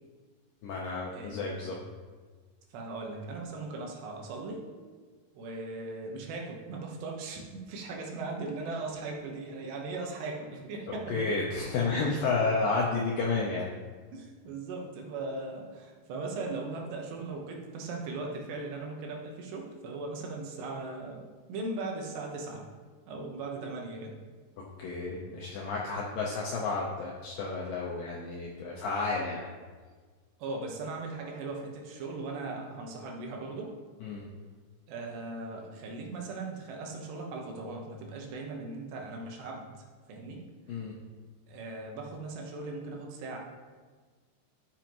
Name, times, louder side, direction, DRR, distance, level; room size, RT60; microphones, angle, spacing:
voice 1, 0.6-1.8 10.9-13.7 24.8-29.4 34.0-34.2 40.7-40.9, left 3 dB, 80° left, -2 dB, 2.0 m, -31 dB
voice 2, 1.1-1.8 2.7-4.6 5.3-11.4 14.1-21.2 21.5-22.7 23.1-24.1 30.4-33.7 34.9-39.7 40.1-40.4 41.5-43.4, right 3 dB, 75° right, 0 dB, 3.3 m, -38 dB
12.5 x 7.1 x 3.0 m, 1.5 s
omnidirectional pair, 5.1 m